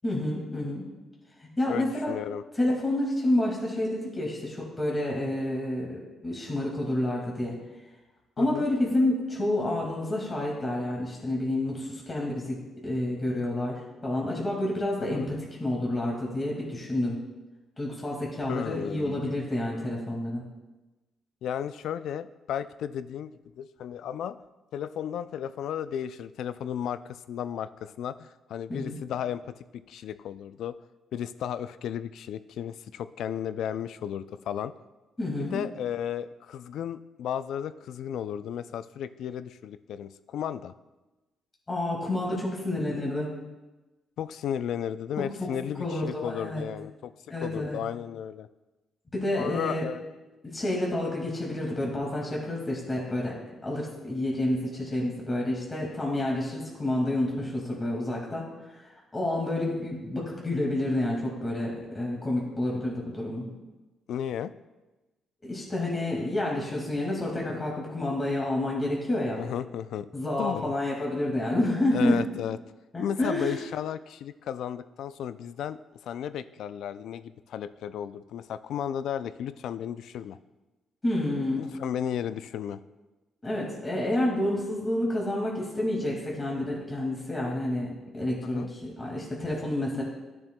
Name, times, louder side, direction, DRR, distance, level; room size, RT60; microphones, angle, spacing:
voice 1, 0.0-0.9 1.4-2.1 2.5-7.6 8.4-12.6 12.8-17.2 17.8-20.4 28.7-29.0 35.2-35.6 41.7-43.3 45.2-45.5 45.8-46.6 47.3-47.8 49.1-49.9 50.4-53.3 53.6-63.5 65.4-69.4 70.1-72.2 72.9-73.6 81.0-81.6 83.4-90.0, left 1 dB, 25° left, -3 dB, 2.0 m, -29 dB
voice 2, 1.7-2.4 8.4-8.7 15.1-15.3 18.5-19.3 21.4-24.4 24.7-29.5 29.9-30.8 31.1-34.7 35.4-40.7 44.2-47.1 47.4-48.5 49.4-50.0 64.1-64.5 69.4-70.1 70.4-70.7 71.9-72.6 73.0-80.4 81.6-82.8 88.4-88.7, left 9 dB, 75° left, 14 dB, 0.3 m, -34 dB
13.0 x 7.0 x 2.2 m, 1.1 s
cardioid pair, 90°, 0 cm